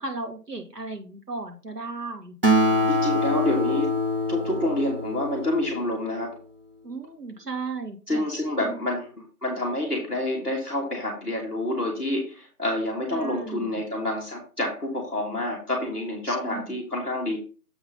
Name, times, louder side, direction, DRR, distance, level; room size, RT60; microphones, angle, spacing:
voice 1, 0.0-2.3 2.6-2.9 6.8-8.8 13.1-13.8 16.3-16.7, right 3 dB, 85° right, 2 dB, 2.4 m, -36 dB
Acoustic guitar, 2.4-6.1, left 1 dB, 35° right, 0.9 m, -24 dB
voice 2, 2.9-3.9 4.3-6.4 8.1-17.4, left 1 dB, 5° right, -11 dB, 1.7 m, -28 dB
7.8 x 4.0 x 5.4 m, 0.35 s
figure-of-eight pair, 160°, 47 cm